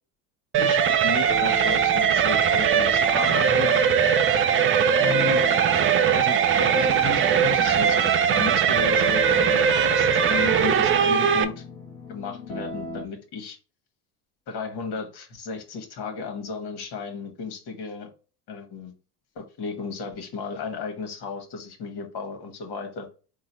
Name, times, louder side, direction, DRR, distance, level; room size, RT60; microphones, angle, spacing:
sound 1, 0.5-11.4, right 7 dB, 30° right, 0.4 m, -20 dB
voice 1, 0.6-3.9 5.0-5.4 6.1-11.6 12.1-13.6 14.5-18.1 18.5-18.9 19.3-23.1, left 5 dB, 55° left, 5 dB, 1.5 m, -34 dB
sound 2, 1.3-13.1, left 4 dB, 5° left, 1.3 m, -38 dB
4.0 x 2.4 x 4.2 m, 0.34 s
hypercardioid pair, 75°, 48 cm